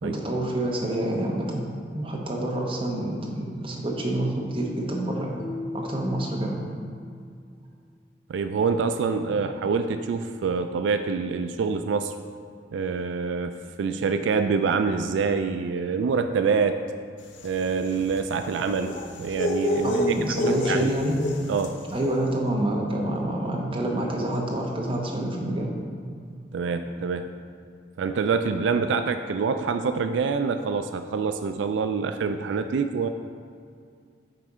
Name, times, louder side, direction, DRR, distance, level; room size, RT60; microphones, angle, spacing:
voice 1, 0.0-1.6 1.9-5.3 5.7-6.6 9.3-9.4 19.8-21.2 21.9-25.7, right 1 dB, 30° right, -2 dB, 1.0 m, -27 dB
sound 1, 5.4-7.6, left 3 dB, 40° left, 0.6 m, -39 dB
voice 2, 8.3-12.1 12.7-16.8 17.4-20.2 20.4-20.9 21.5-21.8 26.5-27.3 28.0-33.1, right 5 dB, 85° right, 8 dB, 0.3 m, -26 dB
sound 2, 17.3-21.9, left 1 dB, 85° left, 0.7 m, -29 dB
7.9 x 4.2 x 4.9 m, 2.2 s
head